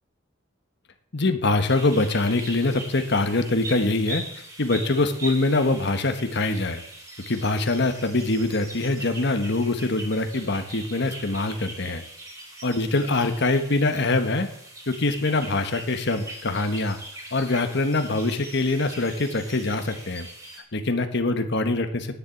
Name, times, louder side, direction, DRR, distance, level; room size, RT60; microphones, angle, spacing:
voice 1, 1.1-4.2 4.6-6.8 7.3-12.0 12.6-14.5 14.9-17.0 17.3-20.3 20.7-22.1, left 2 dB, 60° left, 7 dB, 1.3 m, -24 dB
sound 1, 1.6-20.6, right 1 dB, 20° right, 3.2 m, -41 dB
9.7 x 7.1 x 8.5 m, 0.68 s
head